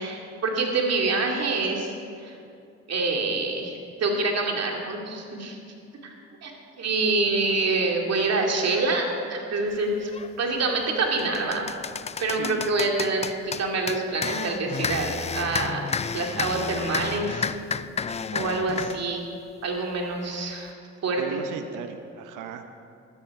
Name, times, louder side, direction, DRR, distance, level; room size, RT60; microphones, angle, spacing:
voice 1, 0.0-1.9 2.2-2.3 2.9-5.6 6.0-6.1 6.4-6.5 6.8-9.0 9.3-10.1 10.4-11.6 12.2-15.9 16.1-17.5 18.3-19.2 19.6-20.7 21.0-21.4, right 3 dB, 55° right, 1 dB, 2.5 m, -26 dB
sound 1, 10.1-10.3 10.8-19.0, left 6 dB, 20° left, 0.4 m, -31 dB
voice 2, 12.3-12.7 21.2-22.6, right 7 dB, 85° right, 7 dB, 0.9 m, -37 dB
14.5 x 13.0 x 4.8 m, 2.4 s
cardioid pair, 90°, 30 cm